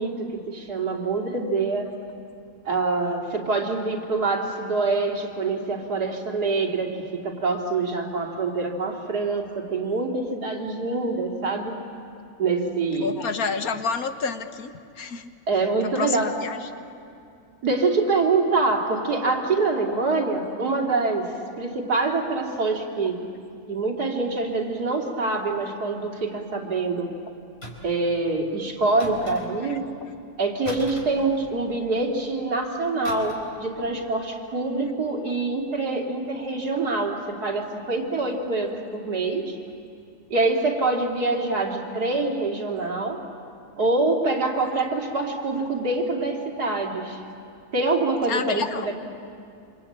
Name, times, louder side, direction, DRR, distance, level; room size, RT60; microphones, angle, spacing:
voice 1, 0.0-1.9 2.7-7.0 7.2-11.8 12.4-13.1 15.5-16.3 17.6-21.3 21.6-23.2 23.7-27.1 27.8-29.9 30.4-39.6 40.3-43.2 43.8-47.2 47.7-48.9, right 3 dB, 85° right, 0 dB, 3.3 m, -25 dB
voice 2, 13.0-15.3 16.0-16.7 29.6-29.8 48.3-48.9, left 5 dB, 70° left, 8 dB, 1.7 m, -29 dB
sound 1, 27.6-28.1 29.0-29.8 30.6-31.8 33.0-33.6 33.8-34.0, equal, 40° left, 4.2 m, -40 dB
27.0 x 25.5 x 8.7 m, 2.5 s
omnidirectional pair, 1.6 m